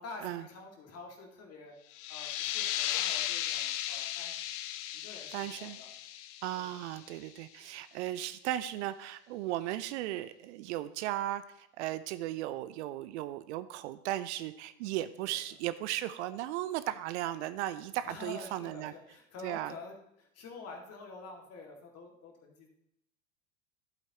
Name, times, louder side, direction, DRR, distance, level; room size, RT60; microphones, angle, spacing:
voice 1, 0.0-4.4 4.9-5.9 6.6-6.7 15.2-15.4 18.0-22.7, left 3 dB, 35° left, 2 dB, 2.1 m, -48 dB
sound 1, 1.9-7.3, left 12 dB, 50° left, 0.7 m, -36 dB
voice 2, 5.3-5.8 6.4-18.9 19.4-19.7, right 14 dB, 55° right, 13 dB, 0.5 m, -36 dB
11.5 x 8.1 x 2.9 m, 0.80 s
hypercardioid pair, 90°, 42 cm